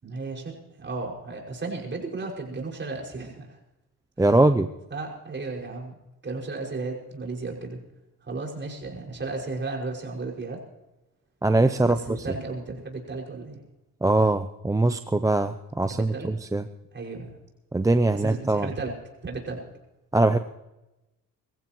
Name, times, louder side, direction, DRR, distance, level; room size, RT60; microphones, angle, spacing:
voice 1, 0.0-3.6 4.2-4.4 4.9-6.0 6.2-7.8 8.2-10.6 11.8-13.6 15.9-16.3 16.9-17.4 18.1-19.0 19.2-19.6, right 3 dB, 35° right, 0 dB, 5.8 m, -34 dB
voice 2, 4.2-4.7 11.4-12.0 14.0-16.6 17.7-18.7 20.1-20.4, right 2 dB, 10° right, 9 dB, 0.6 m, -22 dB
23.0 x 15.0 x 3.1 m, 0.98 s
cardioid pair, 95°, 34 cm